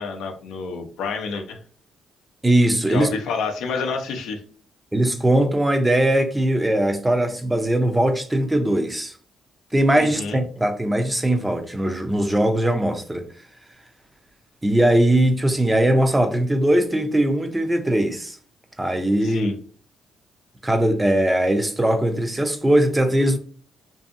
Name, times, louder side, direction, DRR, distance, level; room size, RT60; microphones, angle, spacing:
voice 1, 0.0-1.6 2.9-4.4 10.0-10.4 19.2-19.6, left 4 dB, 85° left, 0.5 m, -29 dB
voice 2, 2.4-3.1 4.9-9.1 9.7-13.3 14.6-18.4 18.8-19.5 20.6-23.4, right 1 dB, 10° right, 0.4 m, -20 dB
2.6 x 2.6 x 2.5 m
cardioid pair, 90°, 0 cm